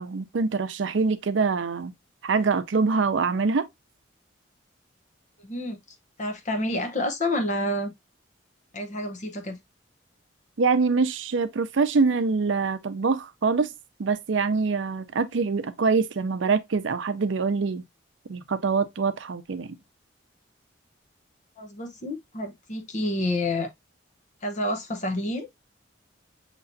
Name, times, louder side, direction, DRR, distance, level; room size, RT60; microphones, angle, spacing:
voice 1, 0.0-1.9 2.2-3.7 10.6-13.7 14.0-17.8 18.3-19.7, right 4 dB, 75° right, 0.5 m, -24 dB
voice 2, 5.4-7.9 8.7-9.6 21.6-23.7 24.4-25.6, left 1 dB, 40° left, 0.9 m, -29 dB
6.6 x 3.0 x 2.6 m
head